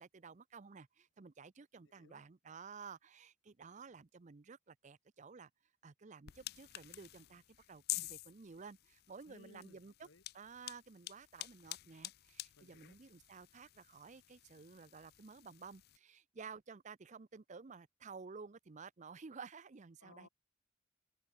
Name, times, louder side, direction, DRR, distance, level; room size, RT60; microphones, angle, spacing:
voice 1, 0.0-5.5 5.8-7.4 7.7-10.1 10.3-20.3, right 5 dB, 40° right, 0.5 m, -53 dB
voice 2, 1.7-2.2 9.3-10.2 12.6-13.0 20.0-20.3, left 2 dB, 90° left, 2.6 m, -62 dB
sound 1, 6.3-16.0, left 16 dB, 55° left, 0.4 m, -49 dB
head